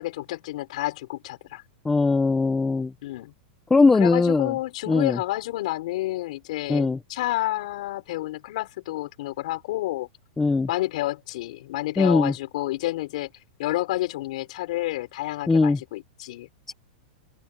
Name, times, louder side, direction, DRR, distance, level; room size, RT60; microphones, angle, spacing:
voice 1, 0.0-1.6 3.0-3.3 4.0-10.1 10.7-13.3 13.6-16.5, left 16 dB, 50° left, 6.0 m, -30 dB
voice 2, 1.8-2.9 3.7-4.6 4.9-5.2 6.7-7.0 10.4-10.7 12.0-12.3 15.5-15.8 16.7-16.8, left 3 dB, 5° left, 1.0 m, -20 dB
open air
supercardioid pair, 170°, 5 cm